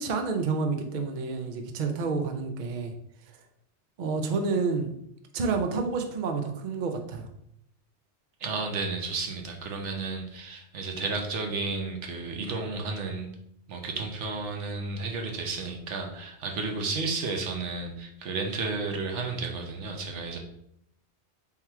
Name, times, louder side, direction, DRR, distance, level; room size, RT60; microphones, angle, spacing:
voice 1, 0.0-2.9 4.0-4.9 5.3-7.3, right 4 dB, 50° right, 5 dB, 0.7 m, -29 dB
voice 2, 8.4-13.3 13.7-20.4, right 3 dB, 85° right, 3 dB, 1.1 m, -32 dB
3.8 x 3.0 x 4.4 m, 0.74 s
omnidirectional pair, 1.2 m